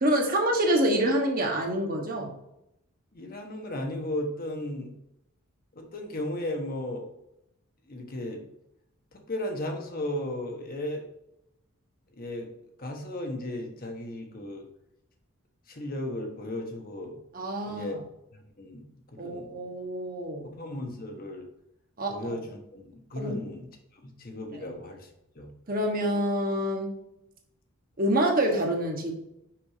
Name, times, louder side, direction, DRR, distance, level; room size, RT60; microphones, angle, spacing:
voice 1, 0.0-2.3 17.3-18.0 19.2-20.5 22.0-22.4 23.2-23.4 24.5-24.6 25.7-27.0 28.0-29.1, right 1 dB, 40° right, 1 dB, 1.3 m, -27 dB
voice 2, 3.1-4.9 5.7-7.1 7.9-8.4 9.1-11.0 12.2-12.5 12.8-14.7 15.7-17.2 17.6-18.0 18.3-19.5 20.4-21.5 22.1-23.7 24.0-25.1 25.3-25.5, left 1 dB, 40° left, 3 dB, 1.1 m, -35 dB
6.0 x 5.2 x 4.9 m, 0.84 s
head